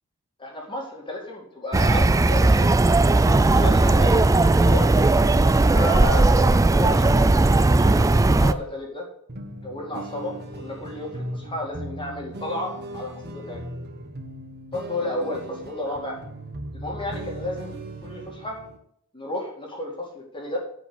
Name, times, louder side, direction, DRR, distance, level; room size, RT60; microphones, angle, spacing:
voice 1, 0.4-2.9 3.5-4.3 4.6-5.0 5.7-7.1 7.7-8.1 8.4-9.1 9.6-13.7 14.7-16.2 16.7-17.8 18.0-18.6 19.1-20.6, left 1 dB, 25° left, -1 dB, 2.3 m, -32 dB
sound 1, 1.7-8.5, right 2 dB, 15° right, 0.3 m, -17 dB
sound 2, 9.3-18.8, right 1 dB, 50° right, 1.3 m, -37 dB
9.4 x 5.2 x 8.0 m, 0.69 s
head